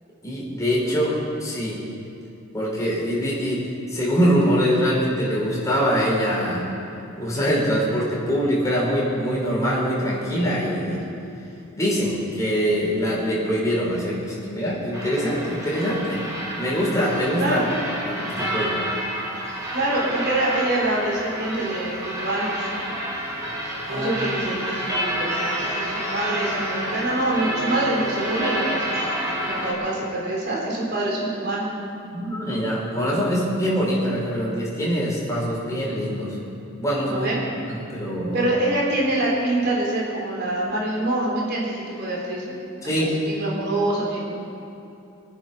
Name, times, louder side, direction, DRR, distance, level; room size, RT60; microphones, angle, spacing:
voice 1, 0.2-1.8 2.5-6.7 7.2-11.0 11.7-16.2 16.6-17.6 18.0-18.8 23.8-24.1 29.5-29.6 32.1-36.4 36.8-37.2 37.6-38.5 42.8-43.1, equal, 15° left, -5 dB, 5.0 m, -23 dB
sound 1, 14.9-29.7, right 1 dB, 15° right, 3.5 m, -29 dB
voice 2, 19.7-22.7 23.9-29.1 29.4-31.7 37.0-37.4 38.3-44.4, right 1 dB, 50° right, -4 dB, 3.8 m, -25 dB
24.5 x 9.7 x 6.0 m, 2.8 s
head